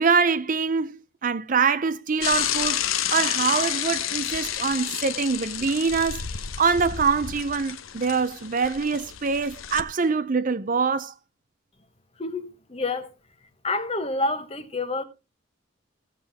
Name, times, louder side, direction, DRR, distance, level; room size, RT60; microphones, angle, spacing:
voice 1, 0.0-2.8 3.1-6.2 6.6-11.1, right 5 dB, 40° right, 0.5 m, -24 dB
Bicycle / Mechanisms, 2.2-9.8, left 10 dB, 85° left, 0.8 m, -30 dB
voice 2, 12.2-13.1 13.6-15.0, left 2 dB, 30° left, 1.2 m, -28 dB
15.5 x 7.6 x 3.5 m
head